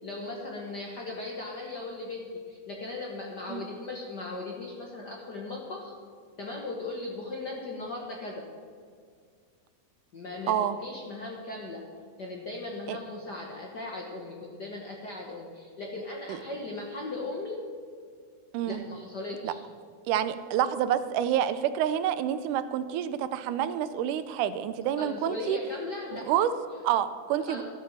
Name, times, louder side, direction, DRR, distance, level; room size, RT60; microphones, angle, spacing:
voice 1, 0.0-5.9 6.4-8.5 10.1-11.8 12.2-17.6 18.7-19.6 25.0-26.4 26.7-26.8 27.5-27.6, left 2 dB, 55° left, -1 dB, 1.2 m, -38 dB
voice 2, 10.5-10.8 12.9-13.0 16.3-16.4 18.5-18.8 19.4-19.5 20.1-25.6 26.3-26.5 26.8-27.6, right 10 dB, 85° right, 12 dB, 2.1 m, -28 dB
13.0 x 7.2 x 7.2 m, 2.1 s
omnidirectional pair, 3.6 m